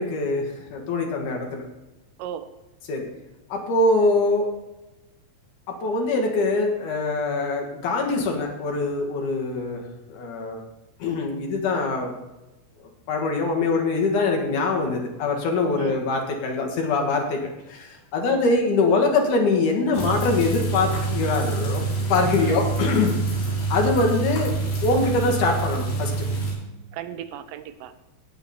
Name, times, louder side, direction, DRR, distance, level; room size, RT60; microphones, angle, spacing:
voice 1, 0.0-1.6 2.9-3.1 3.5-4.5 5.7-9.8 10.1-10.6 11.0-12.1 12.8-21.8 22.1-23.2 23.7-24.5 24.8-26.1, left 3 dB, 55° left, 1 dB, 2.6 m, -23 dB
sound 1, 19.9-26.5, right 3 dB, 70° left, 6.8 m, -26 dB
voice 2, 26.9-27.9, right 10 dB, 75° right, 10 dB, 2.8 m, -36 dB
15.0 x 8.8 x 4.4 m, 1.0 s
omnidirectional pair, 5.7 m